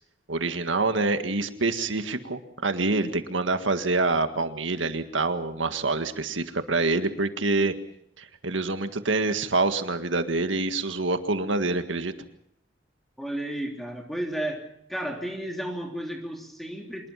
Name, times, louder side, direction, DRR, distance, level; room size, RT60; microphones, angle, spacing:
voice 1, 0.3-7.7 8.2-12.1, right 3 dB, 85° right, 8 dB, 1.8 m, -26 dB
voice 2, 13.2-14.6 14.9-17.1, right 1 dB, ahead, 2 dB, 3.2 m, -33 dB
25.5 x 20.0 x 5.8 m, 0.72 s
head